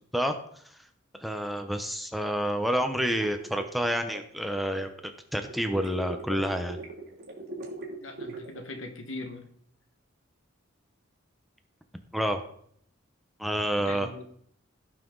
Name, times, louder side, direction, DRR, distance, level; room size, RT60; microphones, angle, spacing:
voice 1, 1.2-4.9 5.3-6.8 12.1-12.4 13.4-14.1, equal, ahead, 5 dB, 0.8 m, -28 dB
sound 1, 3.1-4.9 5.5-8.6, right 2 dB, 55° right, 2.9 m, -40 dB
voice 2, 8.0-9.5 13.8-14.2, left 2 dB, 80° left, 5 dB, 1.7 m, -40 dB
17.0 x 5.9 x 3.9 m, 0.65 s
head